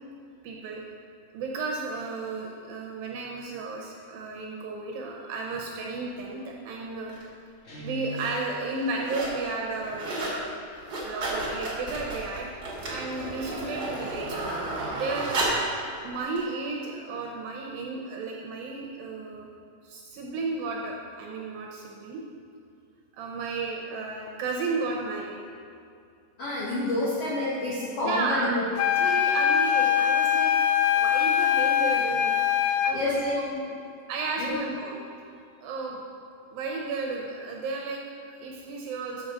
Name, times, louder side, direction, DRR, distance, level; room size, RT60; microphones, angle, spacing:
voice 1, 0.4-0.8 1.3-7.1 7.8-10.5 11.0-12.6 12.9-14.4 14.9-15.4 16.0-19.5 19.8-22.2 23.1-25.4 28.0-28.5 29.0-30.5 30.9-32.4 32.8-33.6 34.1-35.0 35.6-36.0 36.5-39.3, right 3 dB, 75° right, -1 dB, 2.3 m, -33 dB
sound 1, 7.1-7.2 7.9-8.3 8.7-9.4 9.7-10.4 10.7-15.7 16.4-16.5, right 2 dB, 50° right, 1.2 m, -32 dB
Guitar, 7.6-8.4, left 4 dB, 35° left, 1.2 m, -38 dB
voice 2, 26.4-28.6 32.9-33.4 34.4-34.6, left 2 dB, 75° left, -8 dB, 1.4 m, -29 dB
sound 2, 28.8-33.0, left 9 dB, 90° left, 2.1 m, -23 dB
6.6 x 6.3 x 6.4 m, 2.5 s
omnidirectional pair, 4.8 m